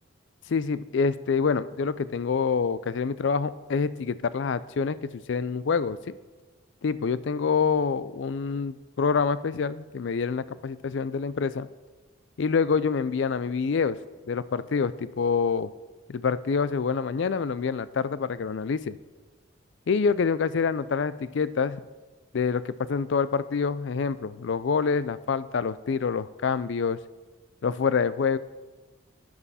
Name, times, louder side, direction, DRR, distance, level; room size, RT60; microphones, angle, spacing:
voice 1, 0.5-6.1 6.8-11.7 12.4-14.0 14.3-15.7 16.1-19.0 19.9-21.8 22.3-27.0 27.6-28.4, left 5 dB, 65° left, 16 dB, 0.4 m, -26 dB
12.5 x 9.4 x 4.2 m, 1.2 s
head